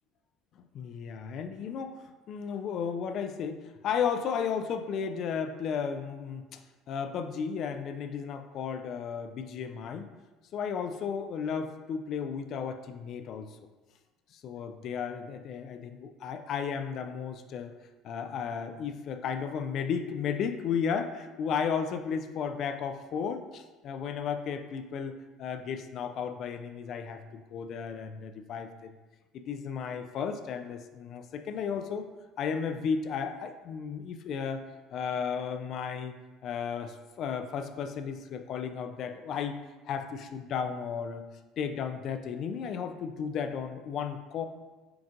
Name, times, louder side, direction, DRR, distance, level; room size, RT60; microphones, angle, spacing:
voice 1, 0.6-6.6 6.9-10.1 10.5-13.5 14.3-17.7 18.0-28.9 29.3-32.1 32.4-34.6 34.9-36.2 36.4-39.6 39.8-41.3 41.6-44.5, left 6 dB, 55° left, 8 dB, 0.4 m, -34 dB
7.6 x 2.6 x 2.5 m, 1.2 s
hypercardioid pair, 65°, 0 cm